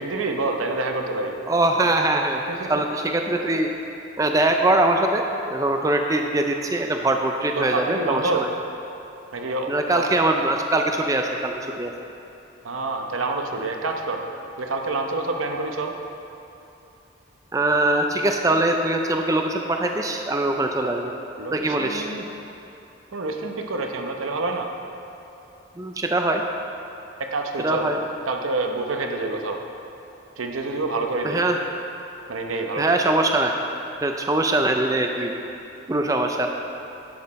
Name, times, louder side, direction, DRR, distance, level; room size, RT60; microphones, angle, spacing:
voice 1, 0.0-1.4 2.5-2.7 7.6-8.4 9.3-10.0 12.6-14.2 14.6-15.9 21.4-22.2 23.1-24.7 27.2-27.9 28.2-29.6 30.4-31.4 32.3-33.0, right 3 dB, 90° right, 3 dB, 0.8 m, -27 dB
voice 2, 1.5-2.4 2.7-3.7 4.2-8.5 9.7-11.9 17.5-21.1 21.5-22.1 25.8-26.4 27.6-28.0 31.2-31.6 32.8-33.5 34.0-35.3 35.9-36.5, right 2 dB, 15° right, 3 dB, 0.4 m, -22 dB
10.5 x 7.5 x 4.1 m, 2.8 s
head